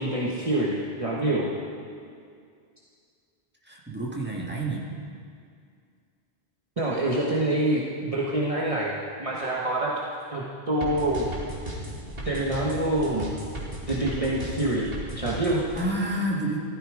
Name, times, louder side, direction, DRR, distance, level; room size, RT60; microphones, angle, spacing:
voice 1, 0.0-1.5 6.8-10.0 10.3-11.3 12.2-13.3 13.9-15.6, right 1 dB, 30° right, -5 dB, 1.4 m, -26 dB
voice 2, 3.6-4.9 15.7-16.6, right 1 dB, 10° right, -3 dB, 1.9 m, -29 dB
sound 1, 10.8-15.8, equal, 60° right, 2.8 m, -35 dB
15.0 x 13.5 x 5.0 m, 2.3 s
omnidirectional pair, 1.1 m